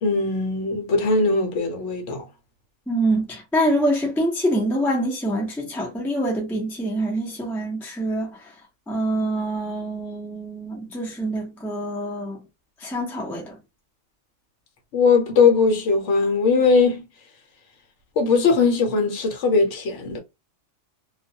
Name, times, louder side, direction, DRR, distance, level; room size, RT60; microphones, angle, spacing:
voice 1, 0.0-2.2 14.9-17.0 18.2-20.2, left 4 dB, 65° left, 1.0 m, -20 dB
voice 2, 2.9-8.5 8.9-12.4 12.8-13.6, right 1 dB, ahead, 0.5 m, -25 dB
2.3 x 2.3 x 2.7 m
omnidirectional pair, 1.4 m